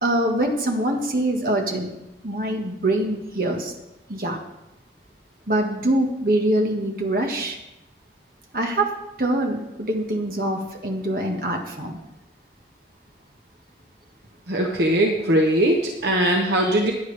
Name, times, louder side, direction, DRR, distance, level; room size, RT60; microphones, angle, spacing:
voice 1, 0.0-1.9 2.2-3.7 4.1-4.4 5.5-7.6 8.5-8.9 9.2-12.0 16.6-16.7, right 1 dB, 55° right, 2 dB, 1.7 m, -24 dB
voice 2, 14.5-16.9, right 1 dB, 70° right, 1 dB, 1.0 m, -20 dB
15.0 x 10.0 x 3.4 m, 0.93 s
head